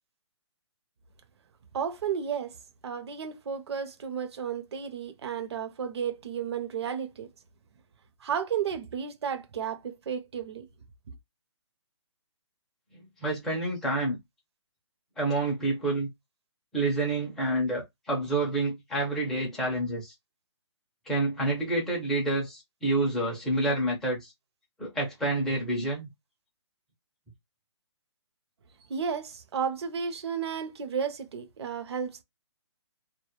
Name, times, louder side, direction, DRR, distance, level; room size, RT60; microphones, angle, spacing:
voice 1, 1.7-2.6 2.8-7.3 8.2-10.7 28.9-32.2, right 7 dB, 60° right, 0.6 m, -33 dB
voice 2, 13.2-14.2 15.2-16.1 16.7-20.1 21.1-24.3 24.8-26.1, right 2 dB, ahead, 0.4 m, -28 dB
2.2 x 2.0 x 2.8 m
hypercardioid pair, 165°, 15 cm